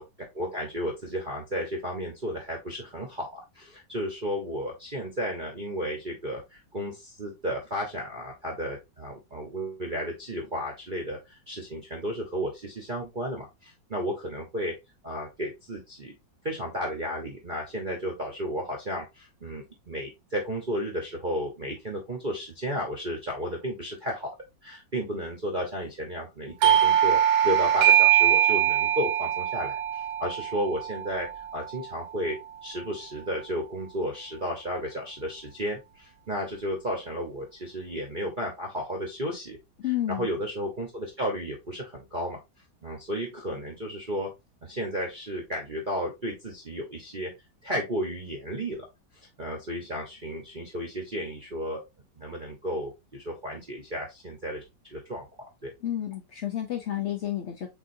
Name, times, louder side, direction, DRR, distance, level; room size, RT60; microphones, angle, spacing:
voice 1, 0.0-14.8 15.0-16.1 16.4-24.3 24.6-39.6 40.1-42.4 42.8-44.3 44.6-47.3 47.6-48.8 49.4-51.8 52.2-54.6 54.9-55.3 55.6-55.7, equal, 35° right, 0.9 m, -33 dB
Doorbell, 26.6-31.9, right 11 dB, 85° right, 1.4 m, -22 dB
voice 2, 39.8-40.3 55.8-57.7, left 12 dB, 75° left, 0.6 m, -30 dB
7.2 x 2.7 x 2.7 m
omnidirectional pair, 2.1 m